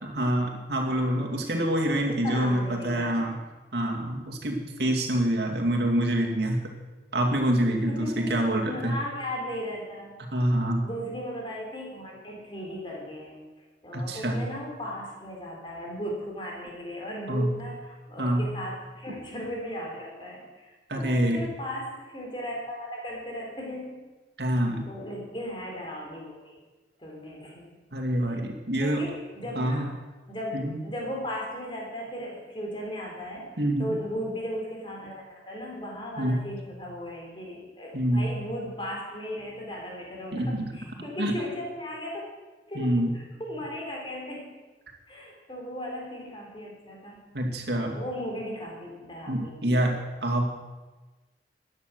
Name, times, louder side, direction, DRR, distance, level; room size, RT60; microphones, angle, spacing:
voice 1, 0.0-3.4 3.7-6.6 7.1-9.0 10.3-10.8 13.9-14.5 17.3-17.5 18.2-18.5 20.9-21.4 24.4-24.9 27.9-29.0 29.5-29.9 30.5-30.8 33.6-34.0 36.2-36.5 37.9-38.3 40.3-40.7 41.2-41.4 42.7-43.1 47.3-48.0 49.3-50.6, right 1 dB, 70° right, 1 dB, 2.5 m, -26 dB
voice 2, 0.8-1.2 1.8-3.4 7.9-10.2 10.8-13.4 13.8-24.1 24.4-24.6 24.9-26.5 27.0-27.7 28.8-29.9 30.3-33.5 33.8-42.3 42.7-44.6 45.1-47.4 47.9-49.8, equal, 30° left, -1 dB, 3.8 m, -37 dB
14.0 x 10.0 x 6.9 m, 1.2 s
head